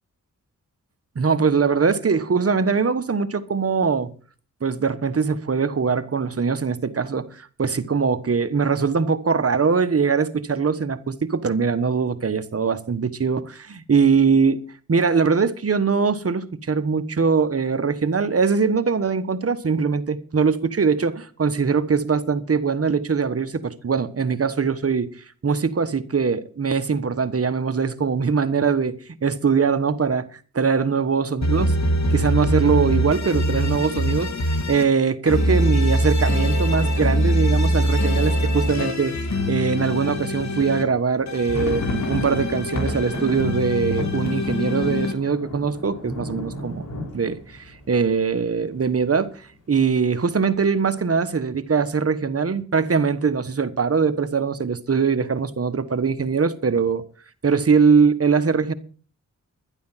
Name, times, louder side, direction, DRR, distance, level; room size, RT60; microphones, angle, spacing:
voice 1, 1.1-4.1 4.6-14.6 14.9-25.1 25.4-31.7 32.1-39.1 39.5-46.9 47.1-49.3 49.7-57.0 57.4-58.7, right 5 dB, 50° right, 1.3 m, -22 dB
sound 1, 31.4-34.8 35.3-40.8 41.3-45.1, equal, 60° left, 2.0 m, -23 dB
sound 2, 41.1-48.9 49.2-49.3 49.6-49.8 50.3-50.8, equal, 90° left, 4.1 m, -33 dB
11.5 x 11.0 x 5.7 m
cardioid pair, 60°, 31 cm